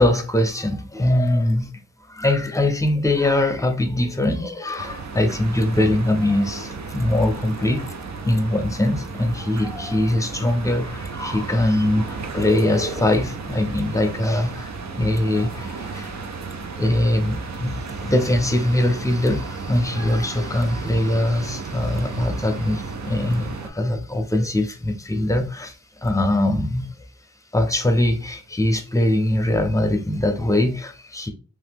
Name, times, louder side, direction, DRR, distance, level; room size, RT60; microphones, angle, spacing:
voice 1, 0.0-1.7 2.1-7.9 8.2-16.1 16.8-26.9 27.5-31.3, left 1 dB, 10° left, 0.6 m, -22 dB
sound 1, 4.8-23.7, right 4 dB, 55° right, 0.5 m, -34 dB
2.8 x 2.1 x 3.4 m
wide cardioid pair, 45°, 33 cm